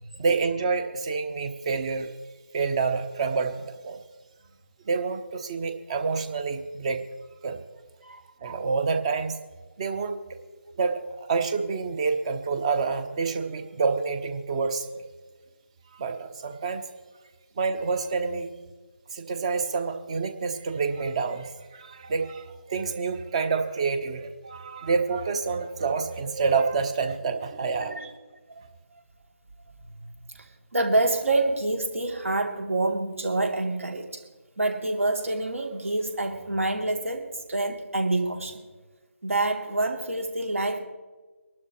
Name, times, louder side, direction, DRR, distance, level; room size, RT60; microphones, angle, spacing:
voice 1, 0.2-2.1 2.5-4.0 4.9-7.1 7.4-7.6 8.4-9.4 9.8-10.2 10.8-15.1 15.9-16.8 17.6-18.5 19.1-28.0, right 4 dB, 25° right, 8 dB, 1.0 m, -28 dB
voice 2, 27.5-28.1 28.5-28.7 28.9-29.0 29.8-30.0 30.3-34.2 34.6-38.6 39.2-40.8, right 2 dB, 60° right, 3 dB, 2.9 m, -27 dB
24.0 x 12.0 x 3.1 m, 1.3 s
figure-of-eight pair, 155°, 8 cm